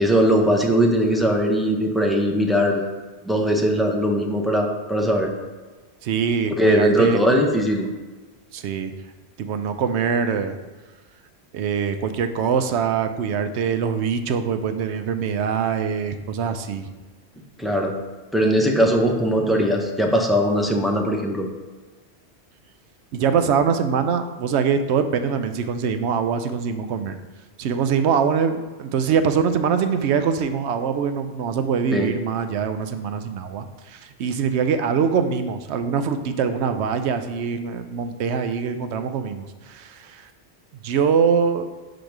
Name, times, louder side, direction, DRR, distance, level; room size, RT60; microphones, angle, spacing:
voice 1, 0.0-2.8 3.3-5.3 6.6-7.9 17.6-18.0 18.3-21.5 31.9-32.1, equal, ahead, 1 dB, 0.6 m, -20 dB
voice 2, 6.0-7.4 8.5-8.9 9.4-10.6 11.5-16.9 23.1-27.2 27.6-40.3 40.8-41.7, right 6 dB, 90° right, 9 dB, 0.9 m, -23 dB
5.1 x 3.9 x 5.9 m, 1.3 s
omnidirectional pair, 1.1 m